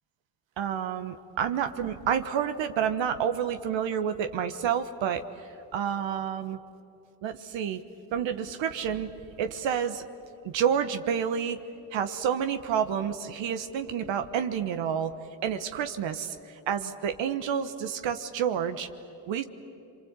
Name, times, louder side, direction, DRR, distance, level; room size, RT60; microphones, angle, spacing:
voice 1, 0.6-6.6 7.2-7.8 8.1-9.1 9.4-10.0 10.4-11.6 11.9-15.1 15.4-18.9 19.3-19.4, right 8 dB, 65° right, 8 dB, 1.4 m, -29 dB
29.0 x 24.0 x 8.3 m, 2.9 s
supercardioid pair, 65°, 48 cm